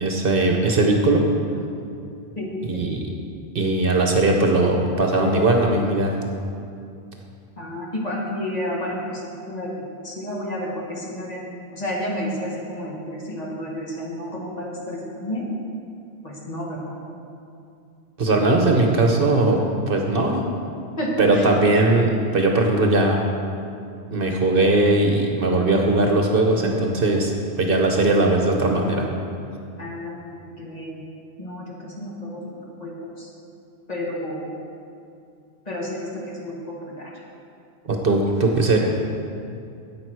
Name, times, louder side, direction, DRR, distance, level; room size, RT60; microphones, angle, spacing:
voice 1, 0.0-1.3 2.7-3.1 3.5-6.1 18.2-19.6 19.9-20.4 21.2-23.2 24.1-27.3 27.6-29.1 37.9-38.8, right 2 dB, 55° right, 2 dB, 1.1 m, -19 dB
voice 2, 2.4-2.8 7.6-9.7 10.0-15.5 16.2-17.0 21.0-21.4 29.8-30.2 30.6-31.0 31.4-33.3 33.9-34.5 35.7-37.1, equal, 35° left, -4 dB, 1.8 m, -31 dB
10.5 x 8.5 x 4.7 m, 2.5 s
omnidirectional pair, 1.2 m